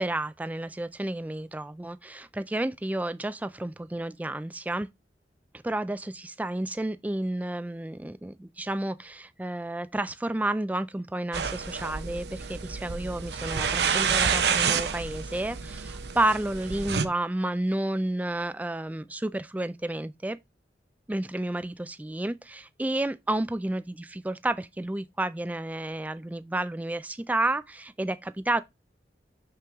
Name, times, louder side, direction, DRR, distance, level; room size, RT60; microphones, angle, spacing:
voice 1, 0.0-4.9 5.6-20.4 21.1-28.6, right 1 dB, 10° right, 0.3 m, -31 dB
sound 1, 11.3-17.0, right 6 dB, 70° right, 0.7 m, -29 dB
6.1 x 5.9 x 3.5 m
head